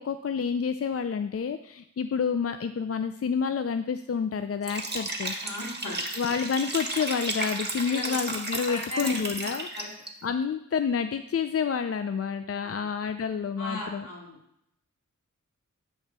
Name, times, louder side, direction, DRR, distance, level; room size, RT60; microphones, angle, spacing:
voice 1, 0.0-5.3 6.2-9.7 10.2-14.1, left 6 dB, 50° left, 9 dB, 0.5 m, -29 dB
Liquid, 4.6-10.1, right 2 dB, 35° right, 1.5 m, -33 dB
voice 2, 5.4-6.0 7.9-8.1 8.7-9.2 9.7-9.9 12.6-12.9 13.6-14.4, left 1 dB, 80° left, -3 dB, 2.6 m, -36 dB
8.1 x 3.9 x 6.1 m, 0.77 s
cardioid pair, 50°, 31 cm